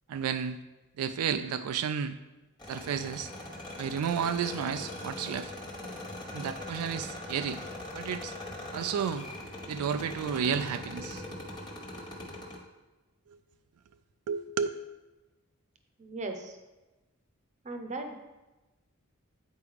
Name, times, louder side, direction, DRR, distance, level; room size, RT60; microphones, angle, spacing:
voice 1, 0.1-0.6 1.0-2.2 2.7-3.3 3.8-5.5 6.3-7.6 7.9-8.3 8.7-9.3 9.7-11.2 13.3-13.4 14.3-14.7, right 7 dB, 85° right, 10 dB, 0.3 m, -32 dB
sound 1, 2.6-12.6, left 1 dB, 20° left, 1.3 m, -41 dB
voice 2, 16.0-16.6 17.6-18.2, right 2 dB, 35° right, 5 dB, 0.7 m, -37 dB
8.6 x 4.7 x 3.4 m, 1.1 s
head